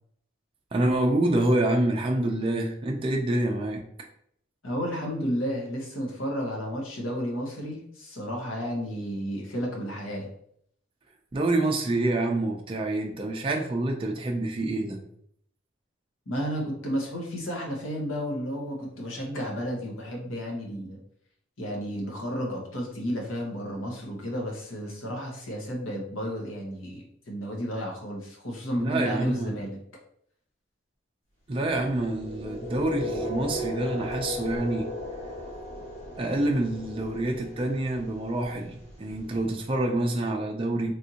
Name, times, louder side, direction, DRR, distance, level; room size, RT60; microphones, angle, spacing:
voice 1, 0.7-3.8 11.3-15.0 28.8-29.6 31.5-34.9 36.2-40.9, right 2 dB, 30° right, 1 dB, 0.4 m, -27 dB
voice 2, 4.6-10.3 16.3-21.0 21.6-29.8, equal, 80° left, 0 dB, 1.1 m, -32 dB
sound 1, 31.6-39.7, left 1 dB, 35° left, 1.2 m, -36 dB
3.4 x 2.6 x 2.8 m, 0.67 s
head